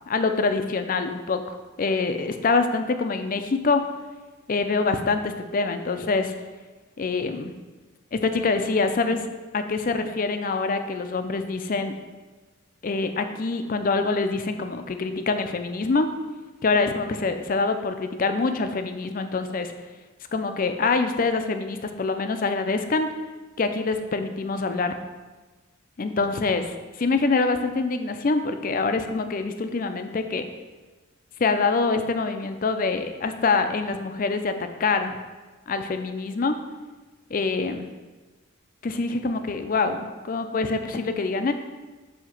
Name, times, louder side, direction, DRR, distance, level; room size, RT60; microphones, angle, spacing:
voice 1, 0.1-3.8 4.5-6.3 7.0-7.5 8.1-9.2 9.5-11.9 12.8-16.1 16.6-19.7 20.3-23.1 23.6-25.0 26.0-30.4 31.4-35.2 35.7-36.6 37.3-37.9 38.8-41.5, left 3 dB, 40° left, 8 dB, 0.4 m, -25 dB
7.7 x 2.8 x 5.8 m, 1.3 s
head